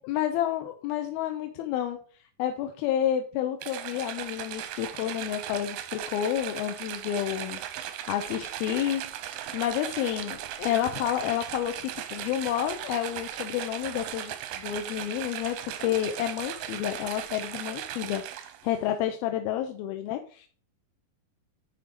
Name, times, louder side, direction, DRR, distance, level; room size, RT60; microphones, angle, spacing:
voice 1, 0.0-2.0 2.4-9.0 9.3-20.5, left 11 dB, 85° left, 5 dB, 2.6 m, -30 dB
sound 1, 3.6-18.7, right 11 dB, 90° right, 2.8 m, -37 dB
10.5 x 3.8 x 6.2 m, 0.42 s
omnidirectional pair, 4.3 m